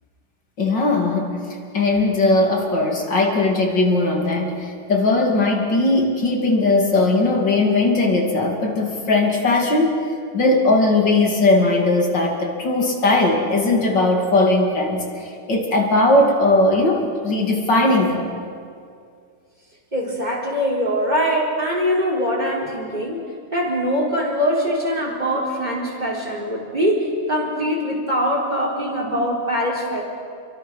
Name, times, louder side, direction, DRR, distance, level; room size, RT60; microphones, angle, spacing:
voice 1, 0.6-1.4 1.7-10.0 10.3-18.3, left 2 dB, 75° left, 1 dB, 3.3 m, -19 dB
voice 2, 19.9-23.2 23.5-30.0, equal, 20° right, -1 dB, 4.4 m, -22 dB
28.0 x 23.5 x 6.3 m, 2.3 s
omnidirectional pair, 2.0 m